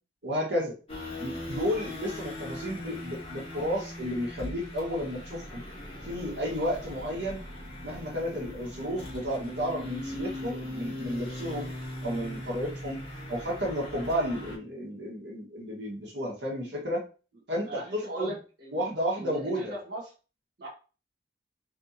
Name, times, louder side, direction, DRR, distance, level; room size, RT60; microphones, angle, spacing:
voice 1, 0.2-0.8 1.2-5.6 6.0-7.4 7.8-11.7 12.0-17.0 17.5-18.3 18.7-19.7, equal, 80° right, -2 dB, 1.8 m, -32 dB
sound 1, 0.9-14.6, left 1 dB, 30° left, 1.5 m, -40 dB
voice 2, 17.6-18.8 19.1-20.0 20.6-20.7, right 2 dB, 65° right, -6 dB, 1.5 m, -38 dB
4.2 x 3.4 x 2.8 m, 0.33 s
head